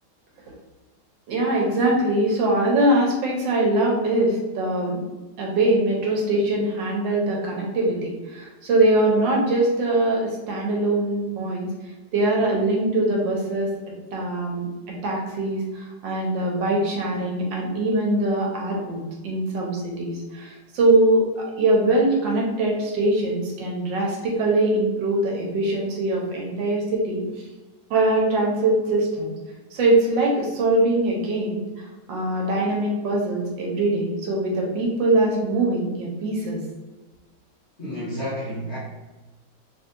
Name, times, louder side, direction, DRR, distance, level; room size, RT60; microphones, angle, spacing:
voice 1, 1.3-5.0 5.4-11.7 12.1-13.7 14.1-14.7 15.0-27.3 27.9-29.3 29.7-36.6, right 2 dB, 75° right, -1 dB, 1.3 m, -22 dB
voice 2, 37.8-38.8, equal, 65° left, -8 dB, 0.6 m, -30 dB
3.0 x 2.6 x 2.5 m, 1.2 s
omnidirectional pair, 2.2 m